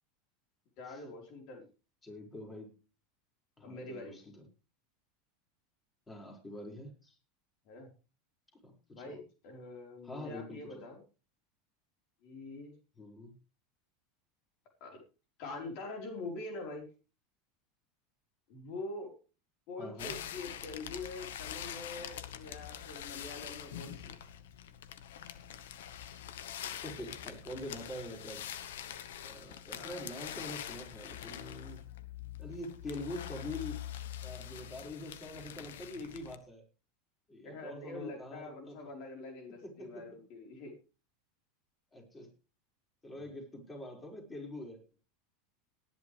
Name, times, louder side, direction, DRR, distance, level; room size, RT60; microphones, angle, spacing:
voice 1, 0.8-1.7 3.6-4.2 7.7-7.9 8.9-11.0 12.2-12.7 14.8-15.0 15.4-16.9 18.5-19.1 19.7-24.2 29.7-30.1 37.4-40.7 43.1-43.3, left 3 dB, 60° left, 2 dB, 4.4 m, -44 dB
voice 2, 2.0-2.7 3.6-4.4 6.1-7.2 8.6-9.0 10.0-10.8 13.0-13.3 19.8-20.2 26.8-28.8 29.2-31.8 32.4-33.9 34.2-36.6 37.3-38.8 39.6-40.0 41.9-42.3 43.0-44.8, left 1 dB, 15° left, 1 dB, 5.7 m, -45 dB
sound 1, 20.0-36.4, left 10 dB, 80° left, 1.1 m, -44 dB
18.5 x 11.0 x 3.4 m, 0.33 s
hypercardioid pair, 105°, 0 cm